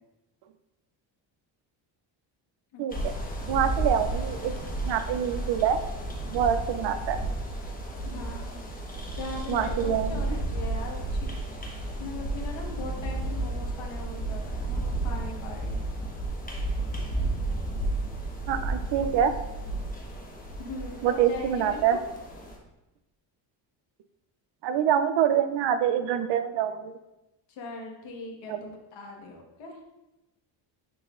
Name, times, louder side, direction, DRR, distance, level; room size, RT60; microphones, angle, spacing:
sound 1, 2.9-22.6, right 2 dB, 20° left, 1.1 m, -32 dB
voice 1, 3.5-4.5 4.8-5.8 6.3-7.2 9.5-10.4 18.5-19.3 21.0-22.0 24.6-27.0 28.5-28.6, right 9 dB, 60° right, 10 dB, 0.6 m, -25 dB
voice 2, 8.0-8.6 9.2-11.3 12.0-15.8 20.6-22.0 27.5-29.8, left 3 dB, 75° left, 0 dB, 1.5 m, -40 dB
10.0 x 4.0 x 2.5 m, 0.97 s
cardioid pair, 130°, 47 cm